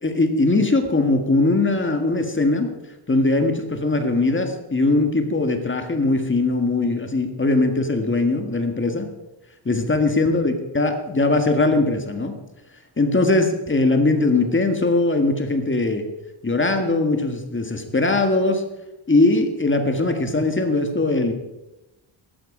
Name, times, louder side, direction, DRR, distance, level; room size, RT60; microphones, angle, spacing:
voice 1, 0.0-2.7 3.1-9.1 9.6-12.4 13.0-16.0 16.4-18.6 19.1-21.3, left 2 dB, 25° left, 5 dB, 1.7 m, -20 dB
14.0 x 11.5 x 5.0 m, 0.99 s
cardioid pair, 110°, 49 cm